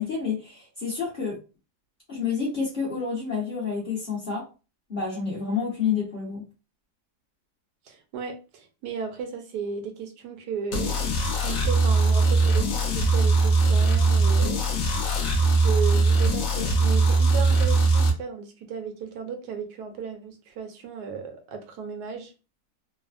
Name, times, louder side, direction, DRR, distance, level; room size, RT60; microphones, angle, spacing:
voice 1, 0.0-1.4 2.1-4.4 4.9-6.4, left 6 dB, 40° left, 1.0 m, -29 dB
voice 2, 7.9-14.6 14.9-15.3 15.5-22.3, right 6 dB, 80° right, 1.2 m, -35 dB
sound 1, 10.7-18.1, right 3 dB, 65° left, 1.0 m, -21 dB
3.2 x 2.0 x 2.4 m
omnidirectional pair, 1.7 m